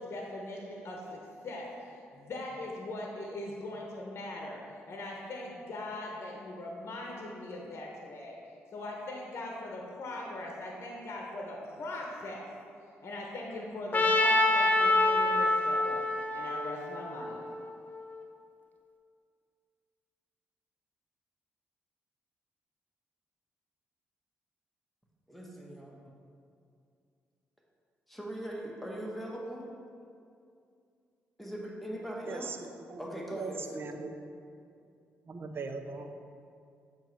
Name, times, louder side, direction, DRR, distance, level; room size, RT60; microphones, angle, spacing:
voice 1, 0.0-4.6 4.9-8.4 8.7-12.4 13.0-16.0 16.3-17.4, left 2 dB, 50° left, -1 dB, 0.9 m, -40 dB
Trumpet, 13.9-18.0, left 2 dB, 30° left, 0.5 m, -27 dB
voice 2, 25.3-26.1 28.1-29.7 31.4-32.5 33.0-33.8, right 1 dB, 5° left, -3 dB, 1.2 m, -40 dB
voice 3, 32.3-33.0 33.3-34.1 35.3-36.2, right 4 dB, 45° right, 6 dB, 0.5 m, -40 dB
7.1 x 3.0 x 4.5 m, 2.4 s
supercardioid pair, 55°, 5 cm